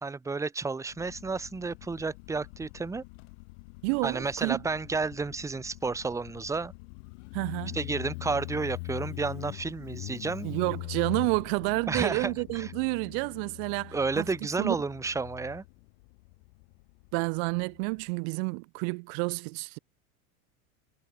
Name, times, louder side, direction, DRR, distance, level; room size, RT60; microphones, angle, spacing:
voice 1, 0.0-3.0 4.0-6.7 7.7-10.5 11.9-12.7 13.9-15.6, right 4 dB, 5° right, 1.5 m, -31 dB
Motorcycle, 0.9-18.1, left 29 dB, 55° left, 5.6 m, -43 dB
voice 2, 3.8-4.6 7.3-7.8 10.4-14.2 14.6-14.8 17.1-19.8, right 38 dB, 50° right, 1.1 m, -30 dB
supercardioid pair, 155°, 42 cm